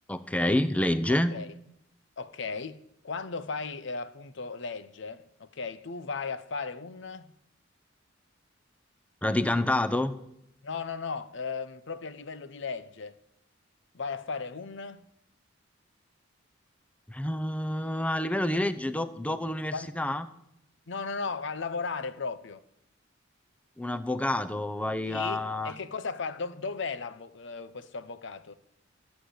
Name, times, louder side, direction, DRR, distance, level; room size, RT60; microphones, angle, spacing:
voice 1, 0.1-1.3 9.2-10.1 17.1-20.2 23.8-25.7, left 1 dB, 5° left, 0.6 m, -28 dB
voice 2, 2.2-7.3 10.6-13.2 13.9-15.0 19.7-19.9 20.9-22.6 25.1-28.5, left 4 dB, 65° left, 0.8 m, -36 dB
14.0 x 8.4 x 7.9 m
head